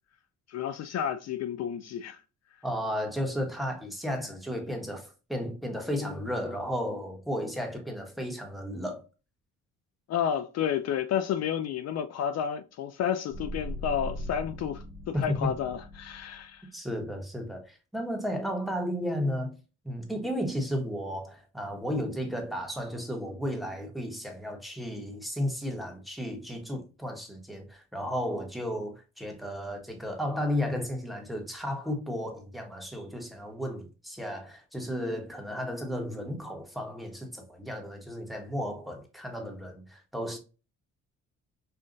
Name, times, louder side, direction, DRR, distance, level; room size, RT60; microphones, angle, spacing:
voice 1, 0.5-2.2 10.1-16.7, left 9 dB, 60° left, 0.4 m, -31 dB
voice 2, 2.6-9.0 15.1-15.5 16.7-19.6 19.8-40.4, equal, ahead, 1.2 m, -33 dB
sound 1, 13.3-16.4, equal, 80° left, 2.2 m, -39 dB
5.6 x 2.4 x 2.5 m
cardioid pair, 90°, 30 cm